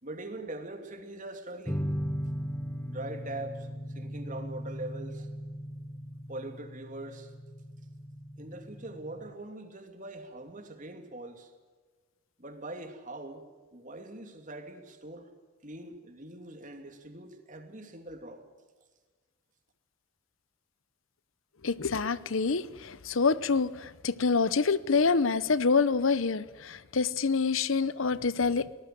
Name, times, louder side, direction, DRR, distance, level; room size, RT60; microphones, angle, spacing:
voice 1, 0.0-1.9 2.9-3.7 3.9-5.3 6.3-7.3 8.4-11.5 12.4-13.4 13.7-15.3 15.6-18.4, right 2 dB, 35° right, 6 dB, 2.8 m, -42 dB
sound 1, 1.7-9.3, equal, 10° left, 1.3 m, -38 dB
voice 2, 21.6-28.7, left 4 dB, 70° left, 17 dB, 0.8 m, -26 dB
24.0 x 19.0 x 7.8 m, 1.3 s
head